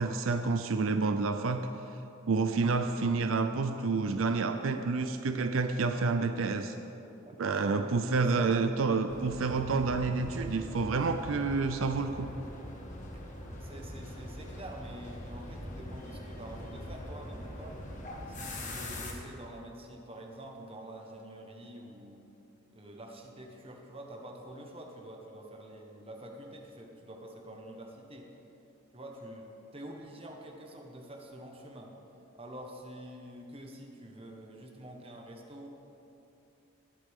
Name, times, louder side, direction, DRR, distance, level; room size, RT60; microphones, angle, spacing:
voice 1, 0.0-1.6 2.3-6.7 7.4-12.3, right 4 dB, 75° right, 7 dB, 0.5 m, -29 dB
voice 2, 7.2-8.7 13.1-13.2 13.6-17.8 18.3-22.2 22.7-28.3 28.9-31.9 32.3-35.7, right 1 dB, 30° right, 0 dB, 1.4 m, -47 dB
sound 1, 9.1-19.1, left 1 dB, 40° left, 1.5 m, -42 dB
20.5 x 8.3 x 3.7 m, 2.9 s
head